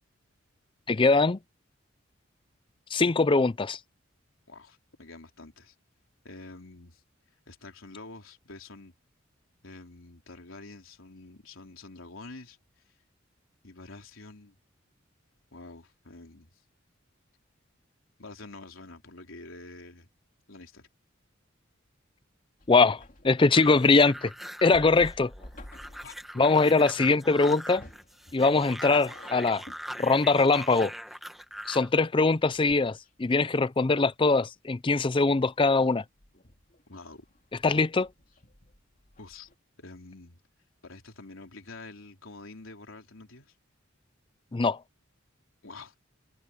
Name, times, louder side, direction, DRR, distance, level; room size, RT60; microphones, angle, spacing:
voice 1, 0.9-1.4 2.9-3.8 22.7-23.0 23.2-24.3 24.6-25.3 26.4-27.8 28.3-29.6 30.0-30.9 31.7-36.0 37.6-38.1 44.5-44.8, left 3 dB, 25° left, 0.5 m, -22 dB
voice 2, 4.5-5.7 6.2-7.0 7.5-8.9 9.6-12.6 13.6-14.6 15.5-16.5 18.2-20.1 20.5-20.9 26.0-26.1 36.9-37.2 37.6-37.8 39.2-39.5 39.8-40.4 40.8-43.5 45.6-45.9, left 3 dB, 85° left, 3.6 m, -47 dB
sound 1, 22.6-33.5 33.8-34.4 34.7-39.6, left 1 dB, 40° left, 3.0 m, -52 dB
sound 2, 23.5-31.9, equal, ahead, 1.4 m, -42 dB
head